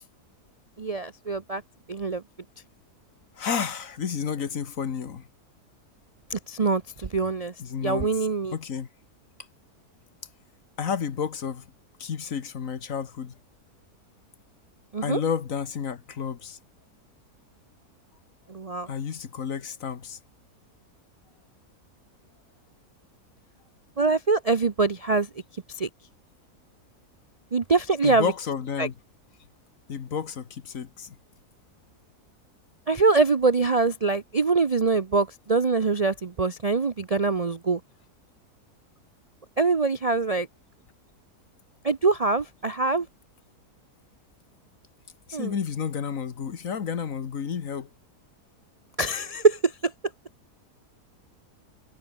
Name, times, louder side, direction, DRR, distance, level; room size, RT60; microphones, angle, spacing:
voice 1, 0.8-1.6 1.9-2.2 6.3-7.5 7.8-8.6 14.9-15.2 18.5-18.9 24.0-25.3 25.8-25.9 27.5-28.3 28.8-28.9 32.9-37.8 39.6-40.5 41.8-43.1 45.3-45.5 49.0-49.9, right 4 dB, 35° right, 0.6 m, -24 dB
voice 2, 3.4-5.3 7.6-8.9 10.8-11.7 12.0-13.3 15.0-16.6 18.9-20.2 28.0-28.9 29.9-31.2 45.3-47.9, left 7 dB, 55° left, 1.6 m, -31 dB
omnidirectional pair, 1.7 m